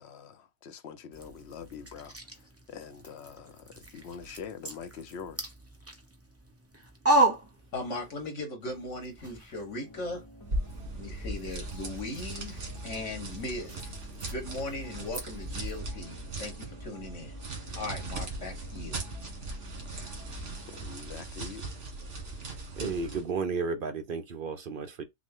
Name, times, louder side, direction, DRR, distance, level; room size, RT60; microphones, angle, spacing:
voice 1, 0.0-2.2 2.7-5.5 20.7-21.7, left 6 dB, 65° left, 0.9 m, -44 dB
sound 1, 1.1-8.3 8.6-15.8, right 2 dB, 15° right, 0.8 m, -35 dB
voice 2, 7.7-10.2 10.9-13.9 14.3-17.4 17.7-19.0, left 2 dB, 90° left, 1.9 m, -38 dB
sound 2, 9.8-20.9, left 1 dB, 25° left, 0.8 m, -54 dB
sound 3, 10.4-23.3, right 2 dB, 75° right, 2.0 m, -39 dB
voice 3, 22.8-25.0, right 4 dB, 55° right, 0.7 m, -33 dB
6.0 x 2.1 x 3.6 m
omnidirectional pair, 1.2 m